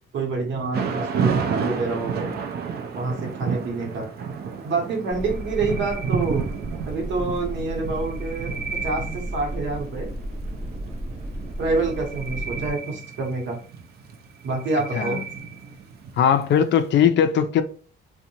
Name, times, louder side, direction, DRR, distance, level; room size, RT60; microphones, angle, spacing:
voice 1, 0.1-2.3 2.9-4.1 4.6-6.5 6.9-10.1 11.6-13.6 14.4-15.2, right 3 dB, 70° right, 0.9 m, -27 dB
Thunder / Rain, 0.7-16.8, right 6 dB, 55° right, 0.4 m, -32 dB
sound 1, 5.1-12.7, right 1 dB, 35° right, 0.9 m, -34 dB
sound 2, 5.2-6.9 7.8-9.7 11.7-13.8 14.2-15.8, right 5 dB, 5° right, 0.7 m, -37 dB
voice 2, 14.9-15.2 16.2-17.6, left 8 dB, 65° left, 0.4 m, -19 dB
2.6 x 2.2 x 2.8 m
cardioid pair, 90°, 20 cm